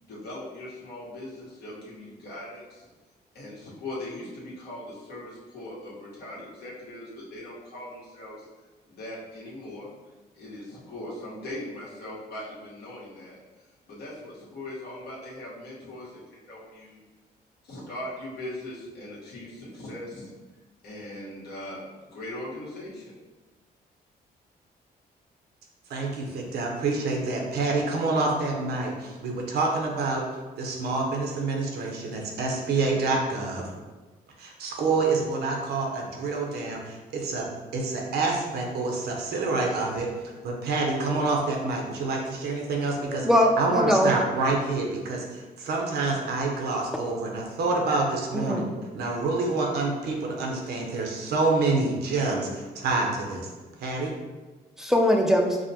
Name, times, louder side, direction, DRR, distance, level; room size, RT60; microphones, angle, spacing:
voice 1, 0.0-2.9 3.3-8.4 8.9-9.9 10.3-13.3 13.9-17.0 17.6-20.3 20.8-23.1, left 1 dB, 80° left, -7 dB, 1.3 m, -40 dB
voice 2, 25.9-30.2 30.6-33.6 34.4-37.5 37.7-40.1 40.4-43.3 43.6-48.6 48.9-53.5 53.8-54.1, right 3 dB, 80° right, 0 dB, 0.7 m, -27 dB
voice 3, 43.0-44.1 48.4-48.6 54.8-55.6, equal, 5° right, 1 dB, 0.4 m, -21 dB
4.9 x 2.1 x 2.8 m, 1.2 s
cardioid pair, 120°, 16 cm